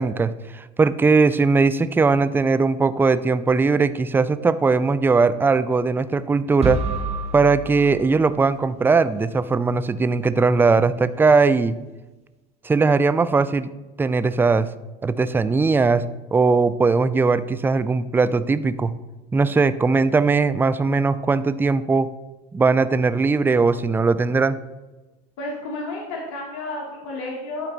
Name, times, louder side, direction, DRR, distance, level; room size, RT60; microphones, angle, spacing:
voice 1, 0.0-6.8 7.3-11.8 12.6-13.7 14.0-14.7 15.0-16.0 16.3-18.9 19.3-22.1 22.5-24.6, right 4 dB, 10° right, 14 dB, 0.4 m, -19 dB
sound 1, 6.6-8.6, right 3 dB, 30° right, 1.3 m, -29 dB
voice 2, 25.4-27.7, left 2 dB, 65° left, -2 dB, 1.7 m, -31 dB
11.5 x 4.3 x 3.9 m, 1.1 s
supercardioid pair, 100°, 21 cm